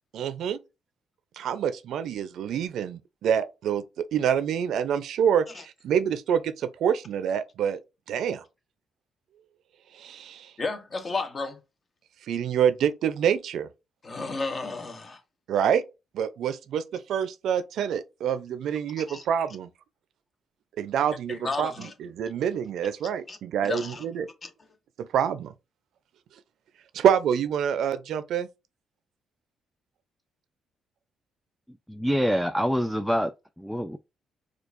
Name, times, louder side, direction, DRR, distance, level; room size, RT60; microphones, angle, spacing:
voice 1, 0.1-0.6 1.4-7.8 8.1-8.4 9.9-10.5 12.3-13.7 15.5-15.8 16.1-19.7 20.8-24.3 25.0-25.5 26.9-28.5, right 8 dB, 75° right, 0.5 m, -26 dB
voice 2, 10.6-11.6 14.0-15.2 19.1-19.2 21.3-21.9 23.3-23.4 23.6-24.0 24.4-24.5, left 3 dB, 35° left, 0.8 m, -32 dB
voice 3, 31.9-33.3 33.6-34.0, equal, ahead, 0.3 m, -25 dB
4.4 x 2.3 x 2.5 m
cardioid pair, 90°, 0 cm